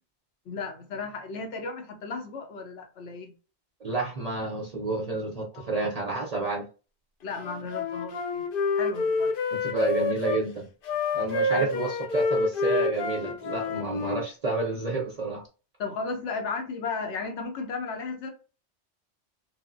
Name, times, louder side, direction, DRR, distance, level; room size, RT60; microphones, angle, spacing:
voice 1, 0.5-3.3 5.5-5.9 7.2-8.4 8.7-9.3 11.5-11.9 15.8-18.3, left 4 dB, 90° left, 1.0 m, -35 dB
voice 2, 3.8-6.6 9.6-10.7 11.1-15.4, right 3 dB, 45° right, 0.5 m, -30 dB
Wind instrument woodwind instrument, 7.4-10.4 10.8-14.2, left 3 dB, 60° left, 0.7 m, -28 dB
3.2 x 2.0 x 2.4 m
omnidirectional pair, 1.2 m